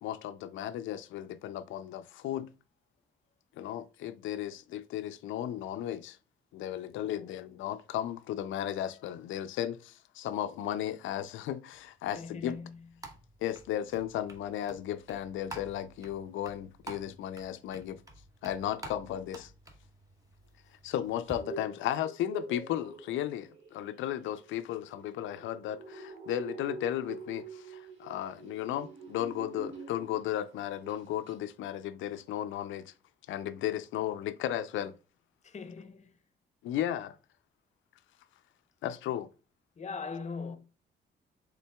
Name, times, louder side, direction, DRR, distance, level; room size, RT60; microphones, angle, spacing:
voice 1, 0.0-2.5 3.6-6.2 6.5-12.6 13.4-18.0 18.4-19.5 20.8-32.9 33.3-34.9 36.6-37.2 38.8-39.3, left 11 dB, 80° left, 0.4 m, -35 dB
voice 2, 6.9-7.4 12.1-12.8 35.4-36.1 39.8-40.6, left 5 dB, 35° left, 0.7 m, -41 dB
sound 1, 11.7-21.4, right 2 dB, 15° right, 0.9 m, -50 dB
sound 2, 21.1-30.4 30.7-31.0 31.3-31.4, right 3 dB, 70° right, 1.7 m, -46 dB
5.6 x 3.8 x 2.2 m
cardioid pair, 90°, 20 cm